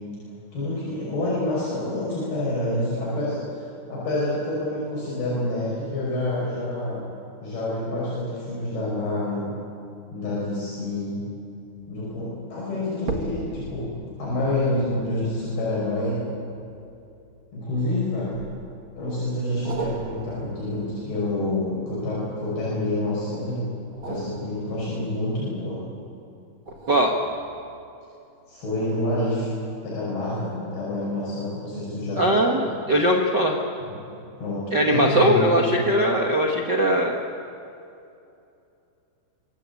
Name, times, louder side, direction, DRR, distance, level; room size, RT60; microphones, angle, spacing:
voice 1, 0.5-7.0 7.4-9.5 10.1-11.2 11.9-13.9 14.2-16.2 17.5-18.4 18.9-23.6 24.1-25.8 28.5-29.5 29.8-32.3 33.9-35.4 35.7-35.8, left 1 dB, 65° left, -7 dB, 7.9 m, -28 dB
sound 1, 11.8-12.1 13.0-17.6 18.3-19.0 19.6-22.6 23.8-25.9 26.7-28.1 28.6-28.7, right 3 dB, 50° right, 1.6 m, -38 dB
voice 2, 32.2-33.6 34.7-37.1, equal, 65° right, -1 dB, 1.0 m, -20 dB
25.0 x 20.5 x 8.5 m, 2.6 s
omnidirectional pair, 4.9 m